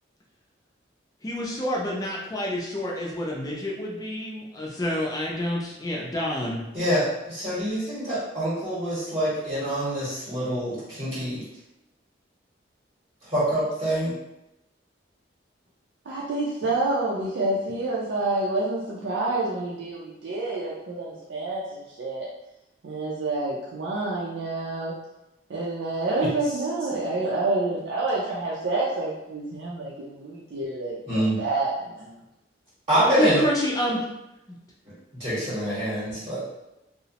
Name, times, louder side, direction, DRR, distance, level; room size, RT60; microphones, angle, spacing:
voice 1, 1.2-6.6 33.2-34.0, left 1 dB, 20° left, -3 dB, 0.4 m, -28 dB
voice 2, 6.7-11.4 13.3-14.1 26.2-26.3 31.1-31.4 32.9-33.4 35.2-36.4, right 1 dB, 30° right, -11 dB, 0.8 m, -25 dB
voice 3, 16.1-22.3 22.8-25.0 25.5-32.1, right 2 dB, 80° right, -6 dB, 0.4 m, -28 dB
2.8 x 2.0 x 2.8 m, 0.93 s
head